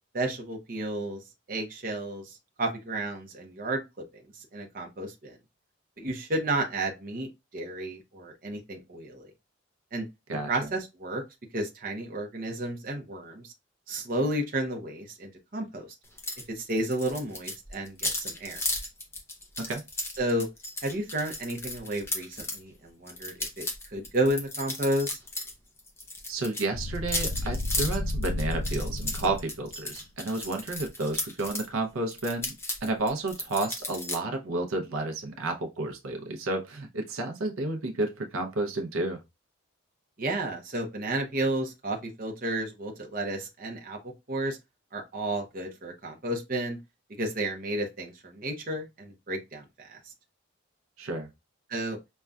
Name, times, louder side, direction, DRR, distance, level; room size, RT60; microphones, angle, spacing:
voice 1, 0.1-1.2 1.5-3.8 4.4-5.3 6.0-7.3 7.5-9.3 9.9-10.1 10.5-11.2 11.5-13.5 13.9-15.9 16.5-18.6 20.2-20.5 20.8-25.2 40.2-44.0 44.3-44.6 44.9-46.8 47.2-50.0 51.7-52.0, right 1 dB, 40° right, 0.7 m, -32 dB
sound 1, 16.2-16.4 16.7-22.6 23.1-25.5 25.8-31.7 32.1-34.2, left 2 dB, 10° left, 0.6 m, -35 dB
voice 2, 26.3-32.5 32.8-39.2 51.0-51.3, right 2 dB, 80° right, 0.6 m, -31 dB
sound 2, 26.7-29.7, left 1 dB, 60° left, 0.5 m, -32 dB
5.2 x 2.3 x 2.3 m
head